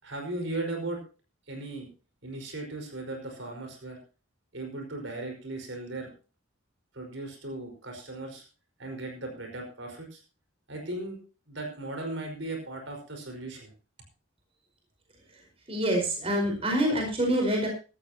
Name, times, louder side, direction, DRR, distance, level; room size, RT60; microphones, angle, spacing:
voice 1, 0.0-1.0 1.5-1.9 2.2-4.0 4.5-6.1 6.9-8.4 8.8-10.2 10.7-11.2 11.5-13.7, right 2 dB, 70° right, 3 dB, 5.2 m, -37 dB
voice 2, 15.7-17.7, right 1 dB, 30° right, 2 dB, 4.9 m, -26 dB
17.0 x 13.5 x 2.9 m, 0.34 s
head